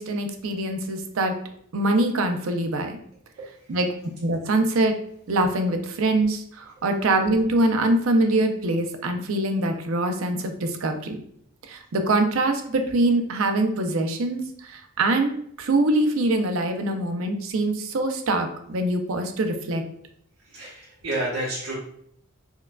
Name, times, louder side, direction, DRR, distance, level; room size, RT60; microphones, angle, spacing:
voice 1, 0.0-1.3 1.7-3.0 3.7-3.9 4.2-4.9 5.3-11.2 11.7-14.4 14.7-19.8, right 2 dB, 70° right, 6 dB, 0.5 m, -23 dB
voice 2, 20.4-21.7, right 1 dB, 90° right, -8 dB, 1.0 m, -30 dB
4.4 x 2.3 x 2.3 m, 0.68 s
head